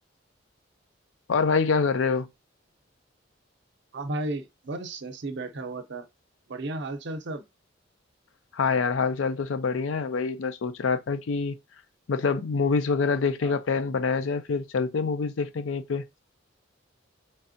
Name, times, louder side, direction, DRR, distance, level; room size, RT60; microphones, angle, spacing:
voice 1, 1.3-2.3 8.5-11.6 12.1-16.0, left 5 dB, 85° left, 0.5 m, -26 dB
voice 2, 3.9-6.1 6.5-7.4 13.4-13.6, right 2 dB, 65° right, 0.7 m, -34 dB
3.5 x 3.3 x 2.7 m
head